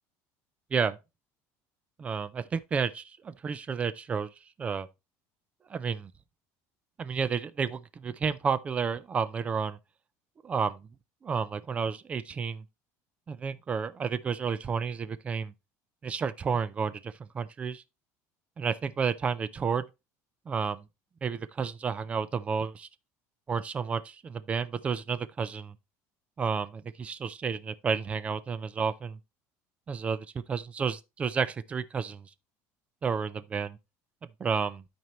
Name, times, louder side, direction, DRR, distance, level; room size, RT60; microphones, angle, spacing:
voice 1, 2.0-4.3 4.6-4.9 5.7-6.1 7.0-9.8 10.4-10.9 11.2-12.6 13.3-15.5 16.0-17.8 18.6-19.9 20.5-20.8 21.2-22.9 23.5-25.8 26.4-29.2 29.9-32.3 33.0-33.8 34.4-34.8, right 6 dB, 20° right, 0.4 m, -31 dB
12.5 x 4.4 x 3.0 m
cardioid pair, 175°, 7 cm